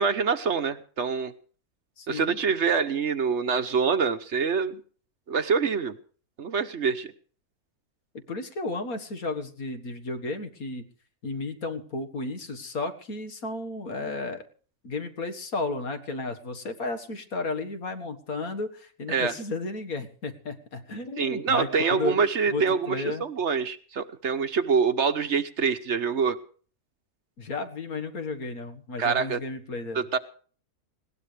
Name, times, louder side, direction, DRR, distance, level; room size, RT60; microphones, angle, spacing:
voice 1, 0.0-1.3 2.1-4.8 5.3-5.9 6.4-7.1 19.1-19.3 21.2-26.4 29.0-29.4 29.9-30.2, right 5 dB, 50° right, 10 dB, 1.2 m, -25 dB
voice 2, 2.0-2.4 8.1-10.8 11.2-14.4 14.8-22.2 22.5-23.3 27.4-30.1, left 3 dB, 65° left, 7 dB, 2.2 m, -33 dB
20.0 x 18.5 x 3.4 m, 0.43 s
omnidirectional pair, 1.6 m